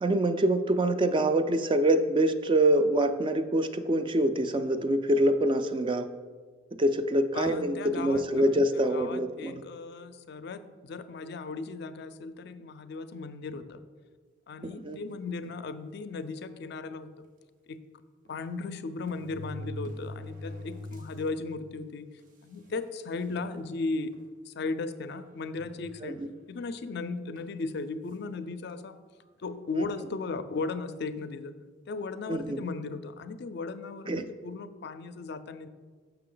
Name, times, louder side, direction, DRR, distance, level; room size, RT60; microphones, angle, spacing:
voice 1, 0.0-6.1 6.8-9.6 14.8-15.0 26.0-26.3 32.3-32.6 34.1-34.3, right 1 dB, 25° right, 10 dB, 0.3 m, -25 dB
voice 2, 7.3-13.8 14.5-17.1 17.7-17.8 18.3-22.1 22.4-24.1 24.5-26.2 26.5-29.0 29.4-31.5 31.9-35.7, left 3 dB, 60° left, 12 dB, 0.4 m, -36 dB
sound 1, 15.4-15.7 16.5-16.6 16.9-17.0 18.3-18.4 19.0-21.3 21.8-21.9 22.7-22.8 23.1-23.5 24.1-24.3 25.6-26.4 27.4-27.6, left 1 dB, 45° right, 0.7 m, -42 dB
6.7 x 5.8 x 3.8 m, 1.5 s
head